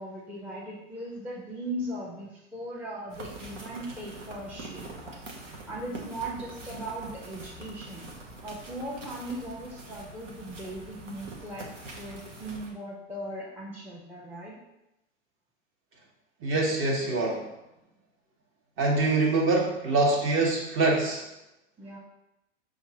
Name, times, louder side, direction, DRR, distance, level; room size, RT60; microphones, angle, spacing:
voice 1, 0.0-5.2 5.7-8.1 8.4-14.6 21.8-22.0, right 1 dB, 5° right, -6 dB, 0.6 m, -38 dB
sound 1, 3.1-12.7, right 2 dB, 80° right, 0.9 m, -44 dB
voice 2, 16.4-17.4 18.8-21.2, right 3 dB, 35° right, -1 dB, 1.1 m, -24 dB
5.6 x 2.4 x 2.8 m, 0.90 s
figure-of-eight pair, 90°, 37 cm